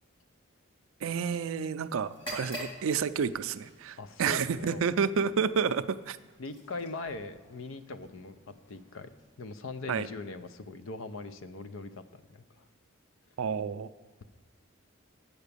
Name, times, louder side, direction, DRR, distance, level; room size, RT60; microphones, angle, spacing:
voice 1, 1.0-6.2 9.9-10.1 13.4-13.9, right 6 dB, 70° right, 12 dB, 0.4 m, -30 dB
sound 1, 2.1-9.9, equal, 25° left, 2.1 m, -48 dB
voice 2, 4.0-4.9 6.4-9.1 9.4-12.6, left 3 dB, 65° left, 11 dB, 0.5 m, -41 dB
8.1 x 5.8 x 6.7 m, 1.3 s
head